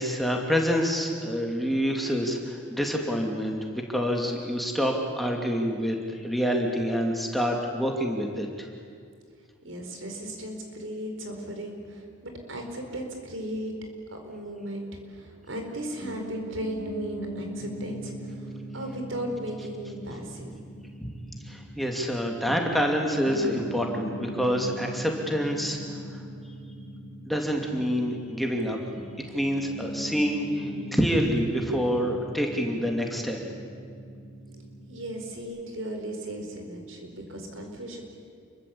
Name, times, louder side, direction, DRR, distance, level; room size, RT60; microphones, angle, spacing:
voice 1, 0.0-8.7 21.0-21.1 21.4-25.8 26.1-26.2 27.3-28.8 29.3-33.4, equal, ahead, 1 dB, 2.6 m, -27 dB
voice 2, 9.6-13.7 14.1-20.5 34.5-34.6 34.9-38.0, right 1 dB, 70° right, 3 dB, 4.6 m, -36 dB
Piano, 16.0-35.4, right 1 dB, 25° left, 6.5 m, -40 dB
28.5 x 22.5 x 8.6 m, 2.3 s
head